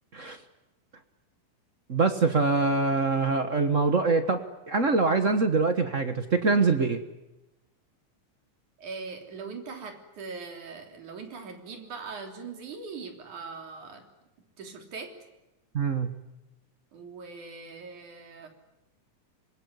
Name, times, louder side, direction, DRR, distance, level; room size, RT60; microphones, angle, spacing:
voice 1, 1.9-7.0 15.7-16.1, right 4 dB, 45° right, 8 dB, 1.0 m, -24 dB
voice 2, 8.8-14.0 14.6-15.1 16.9-18.5, right 4 dB, 85° right, 4 dB, 4.9 m, -41 dB
26.0 x 22.5 x 9.8 m, 0.98 s
omnidirectional pair, 3.4 m